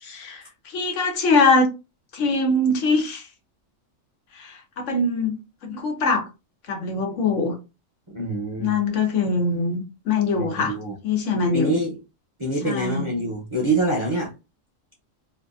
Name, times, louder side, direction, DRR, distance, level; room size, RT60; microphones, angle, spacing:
voice 1, 0.0-1.7 2.1-3.3 4.3-6.3 6.7-7.5 8.6-10.8 11.0-11.8 12.6-13.1, left 3 dB, 70° left, 1.0 m, -23 dB
voice 2, 8.1-8.8 10.3-11.0 11.5-12.0 12.4-14.3, right 2 dB, 30° right, 0.6 m, -25 dB
2.6 x 2.3 x 2.4 m
omnidirectional pair, 1.4 m